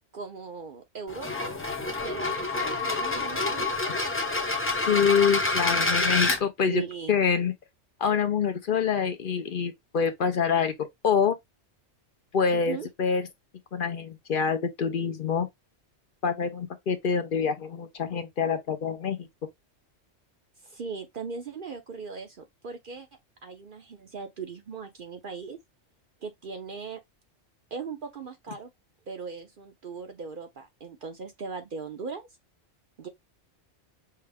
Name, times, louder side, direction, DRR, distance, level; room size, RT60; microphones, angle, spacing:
voice 1, 0.1-1.6 2.0-3.9 5.7-5.9 6.7-7.2 12.5-12.9 20.6-25.6 26.2-27.0 27.7-28.7 29.1-32.3 33.0-33.1, right 5 dB, 55° right, 0.8 m, -39 dB
sound 1, 1.1-6.4, left 2 dB, 15° left, 0.6 m, -27 dB
voice 2, 4.9-6.8 7.1-7.5 8.0-10.7 11.0-11.4 12.3-13.3 13.7-15.5 16.2-19.3, left 6 dB, 55° left, 0.7 m, -26 dB
5.7 x 2.0 x 3.4 m
omnidirectional pair, 1.2 m